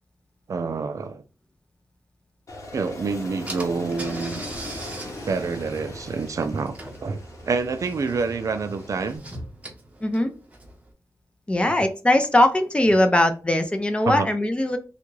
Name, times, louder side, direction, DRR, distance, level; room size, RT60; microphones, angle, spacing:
voice 1, 0.5-1.2 2.7-4.5 5.2-9.2 14.1-14.3, right 4 dB, 60° right, 0.4 m, -27 dB
Aircraft, 2.5-9.2, left 1 dB, 60° left, 1.0 m, -39 dB
Car / Engine, 3.0-3.1 3.5-10.9, right 1 dB, 20° right, 0.9 m, -41 dB
voice 2, 10.0-10.3 11.5-14.8, left 1 dB, 20° left, 0.5 m, -20 dB
3.5 x 2.4 x 3.1 m
wide cardioid pair, 95°, 6 cm